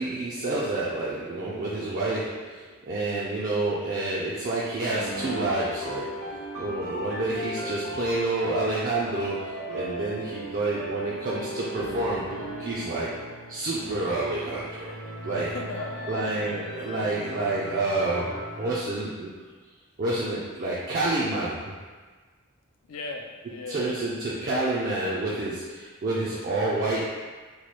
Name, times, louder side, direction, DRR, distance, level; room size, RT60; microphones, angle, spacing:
voice 1, 0.0-6.1 6.6-12.2 12.6-13.2 13.5-15.0 15.2-15.5 16.1-19.3 20.0-21.8 23.7-27.0, right 2 dB, 40° right, -7 dB, 0.3 m, -29 dB
sound 1, 4.9-18.8, right 1 dB, 90° right, 0.7 m, -37 dB
voice 2, 15.3-16.3 22.8-24.1, left 3 dB, 75° left, 2 dB, 0.4 m, -37 dB
3.0 x 2.2 x 3.2 m, 1.4 s
head